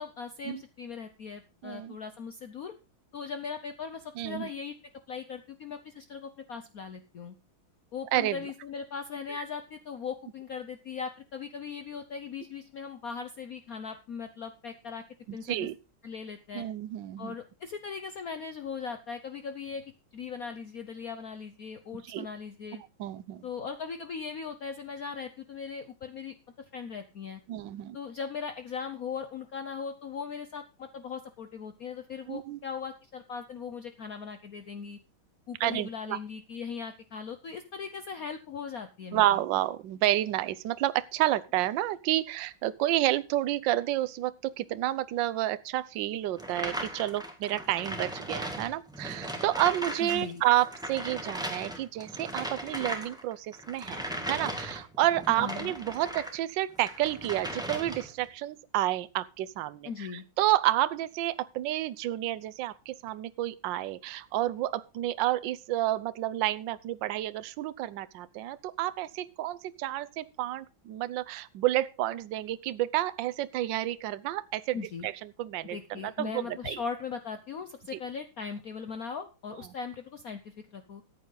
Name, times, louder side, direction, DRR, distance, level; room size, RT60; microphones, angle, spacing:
voice 1, 0.0-2.7 3.1-4.7 5.1-7.3 7.9-15.0 15.3-15.7 16.0-16.7 17.2-19.8 20.1-22.8 23.4-26.3 26.7-27.4 27.9-35.0 35.5-39.4 50.0-50.4 55.3-55.7 59.8-60.3 74.7-75.1 75.6-81.0, left 6 dB, 55° left, 9 dB, 1.1 m, -39 dB
voice 2, 1.6-2.0 4.2-4.5 8.1-8.4 15.3-15.7 16.5-17.4 21.9-22.3 23.0-23.4 27.5-28.0 32.3-32.6 35.6-36.2 39.1-54.0 54.3-76.8 77.9-78.0, right 14 dB, 70° right, 16 dB, 1.3 m, -30 dB
sound 1, 46.4-50.2 50.5-56.4 56.7-58.2, right 1 dB, ahead, 1.8 m, -37 dB
14.0 x 9.3 x 3.9 m, 0.31 s
omnidirectional pair, 2.3 m